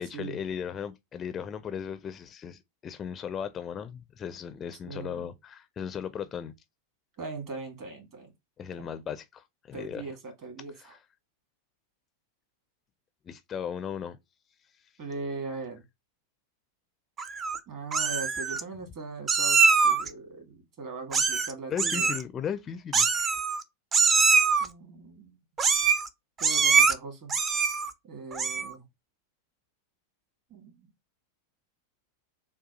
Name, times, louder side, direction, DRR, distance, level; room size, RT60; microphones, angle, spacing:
voice 1, 0.0-6.5 8.6-10.1 10.8-11.0 13.2-14.2 21.7-23.1, left 8 dB, 25° left, 0.4 m, -36 dB
voice 2, 4.8-5.3 7.2-8.3 8.8-8.9 9.7-11.0 15.0-15.8 17.7-22.1 24.6-25.4 26.4-27.3 28.0-28.8 30.5-30.7, right 3 dB, 40° right, 2.0 m, -40 dB
Meow, 17.2-17.6 17.9-18.6 19.3-20.1 21.1-21.5 21.8-22.2 22.9-23.6 23.9-24.7 25.6-26.1 26.4-26.9 27.3-27.9 28.3-28.7, right 5 dB, 25° right, 0.6 m, -23 dB
6.8 x 2.3 x 2.5 m
figure-of-eight pair, 90°, 0 cm